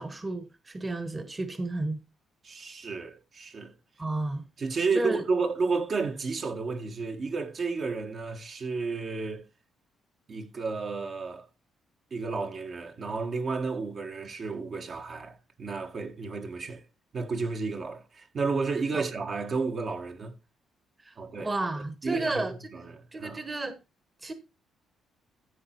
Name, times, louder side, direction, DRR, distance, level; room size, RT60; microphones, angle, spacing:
voice 1, 0.0-2.0 4.0-4.4 4.9-5.2 18.9-19.0 21.0-21.1 21.4-22.8 23.1-23.8 24.2-24.3, right 2 dB, 25° right, 1.4 m, -32 dB
voice 2, 2.4-3.7 4.6-9.4 10.3-11.5 12.1-16.8 17.1-20.3 21.2-21.5 22.0-23.4, right 4 dB, 50° right, 1.6 m, -32 dB
13.5 x 4.9 x 4.5 m
cardioid pair, 90°, 0 cm